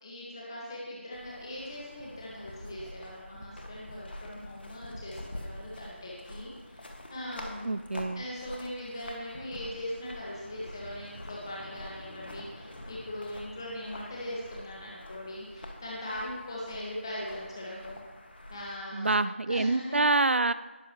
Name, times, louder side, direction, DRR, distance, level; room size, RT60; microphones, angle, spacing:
voice 1, 0.0-7.8 8.1-18.0 18.5-19.2 19.5-20.0, left 1 dB, 20° left, -6 dB, 1.7 m, -40 dB
sound 1, 1.1-18.8, left 1 dB, 50° left, 1.8 m, -46 dB
voice 2, 7.7-8.2 18.9-20.5, right 2 dB, 65° right, 13 dB, 0.4 m, -26 dB
19.0 x 7.3 x 3.1 m, 1.2 s
figure-of-eight pair, 175°, 7 cm